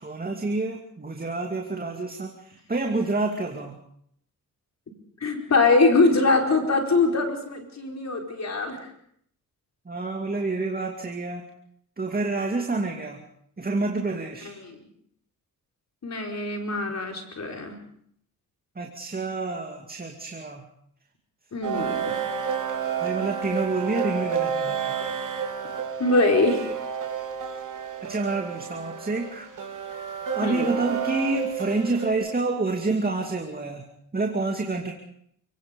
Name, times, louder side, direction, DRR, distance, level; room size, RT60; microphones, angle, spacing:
voice 1, 0.0-3.8 9.9-11.4 12.0-13.2 13.6-14.5 18.8-20.6 23.0-25.0 28.0-29.5 30.4-33.8 34.1-34.9, right 3 dB, 25° right, 3 dB, 2.5 m, -28 dB
voice 2, 5.2-8.8 14.4-14.8 16.0-17.7 21.5-22.2 23.9-24.0 26.0-26.6 30.4-30.7, left 3 dB, 50° left, 2 dB, 4.9 m, -23 dB
sound 1, 21.6-32.1, right 7 dB, 60° right, 3.7 m, -30 dB
29.5 x 17.5 x 5.3 m, 0.67 s
cardioid pair, 85°, 35 cm